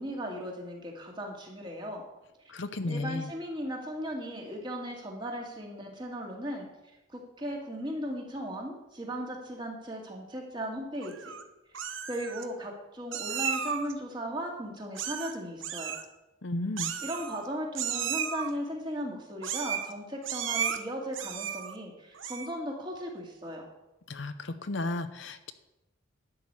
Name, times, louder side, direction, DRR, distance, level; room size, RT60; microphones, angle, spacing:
voice 1, 0.0-2.0 2.8-6.7 7.1-11.3 12.1-15.9 17.0-23.7, equal, 20° right, 0 dB, 2.3 m, -37 dB
voice 2, 2.5-3.3 16.4-16.9 24.1-25.5, left 2 dB, 60° left, 10 dB, 0.7 m, -34 dB
Meow, 11.0-11.4 11.7-12.4 13.1-13.9 14.9-15.4 15.6-16.0 16.8-17.5 17.7-18.5 19.4-19.9 20.2-20.8 21.1-21.7 22.1-22.6, right 8 dB, 70° right, 1.1 m, -34 dB
11.5 x 6.3 x 8.8 m, 0.95 s
head